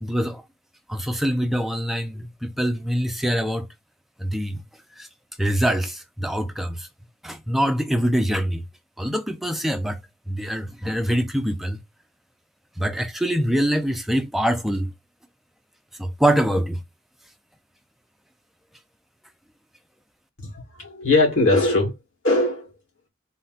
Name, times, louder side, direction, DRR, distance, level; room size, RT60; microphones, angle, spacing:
voice 1, 0.0-0.4 0.9-3.7 4.2-4.6 5.0-5.1 5.4-6.9 7.2-8.6 9.0-10.0 10.3-11.8 12.8-14.9 16.0-16.8, equal, ahead, 0.4 m, -24 dB
voice 2, 20.4-22.0 22.2-22.7, left 2 dB, 80° left, 2.2 m, -20 dB
4.2 x 2.2 x 3.9 m
head